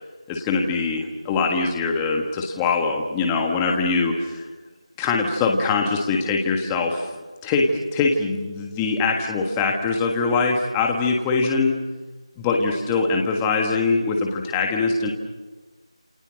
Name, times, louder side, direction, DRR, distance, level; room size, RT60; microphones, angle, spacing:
voice 1, 0.3-4.5 5.0-7.1 7.4-11.8 12.4-15.1, left 4 dB, 5° left, 2 dB, 1.5 m, -22 dB
29.0 x 29.0 x 6.5 m, 1.3 s
figure-of-eight pair, 175°, 3 cm